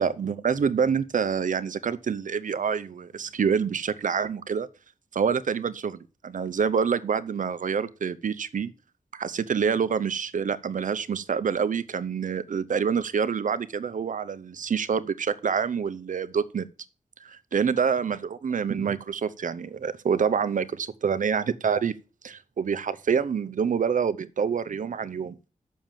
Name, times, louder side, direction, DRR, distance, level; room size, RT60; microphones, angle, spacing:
voice 1, 0.0-4.7 5.1-8.7 9.1-16.7 17.2-21.9 22.2-25.4, right 6 dB, 70° right, 0.7 m, -27 dB
7.3 x 6.4 x 7.3 m
wide cardioid pair, 95°, 14 cm